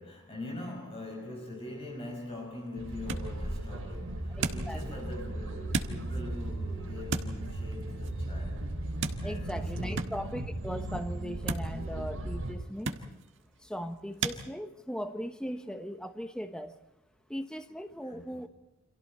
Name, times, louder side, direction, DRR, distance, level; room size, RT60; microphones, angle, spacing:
voice 1, 0.0-8.7 9.2-10.0 18.0-18.4, left 1 dB, 25° left, 5.6 m, -43 dB
sound 1, 1.9-14.4, right 4 dB, 55° right, 1.6 m, -40 dB
sound 2, 2.8-12.5, right 1 dB, 75° right, 6.2 m, -36 dB
voice 2, 4.3-5.1 9.2-13.2 13.6-16.8 17.3-18.5, equal, 5° left, 1.1 m, -39 dB
29.0 x 26.5 x 4.4 m
head